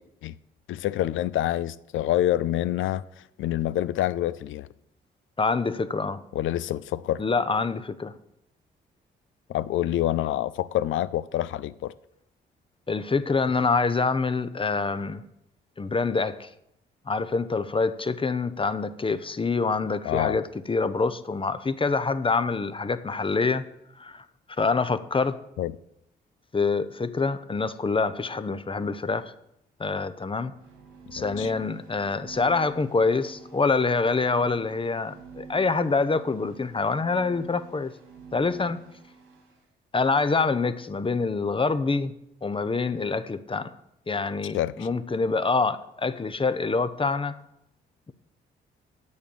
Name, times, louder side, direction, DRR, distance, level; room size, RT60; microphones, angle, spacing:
voice 1, 0.7-3.0 3.4-4.7 6.3-7.2 9.5-11.9 20.0-20.4 25.6-25.8 31.2-31.5 44.5-44.9, left 13 dB, 70° left, 0.5 m, -27 dB
voice 2, 5.4-6.2 7.2-8.1 12.9-15.2 15.8-16.5 17.1-23.6 24.0-24.2 24.6-25.4 26.5-29.3 29.8-30.5 31.1-37.9 38.3-38.8 39.9-42.1 42.4-43.7 44.1-47.4, left 4 dB, 25° left, 0.8 m, -26 dB
sound 1, 30.5-39.6, right 5 dB, 85° right, 2.9 m, -47 dB
8.4 x 6.4 x 7.2 m
supercardioid pair, 55°, 21 cm